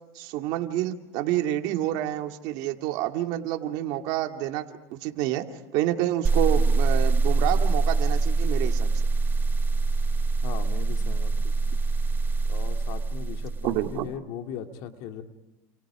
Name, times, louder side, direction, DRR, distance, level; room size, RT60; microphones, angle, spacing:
voice 1, 0.1-5.4 5.7-8.9 13.6-14.1, right 13 dB, 65° right, 4 dB, 2.6 m, -28 dB
sound 1, 6.2-14.1, right 3 dB, 25° right, 0.8 m, -24 dB
voice 2, 10.4-11.5 12.5-15.2, left 8 dB, 60° left, 5 dB, 2.6 m, -38 dB
29.5 x 29.0 x 5.1 m, 1.0 s
supercardioid pair, 125°, 8 cm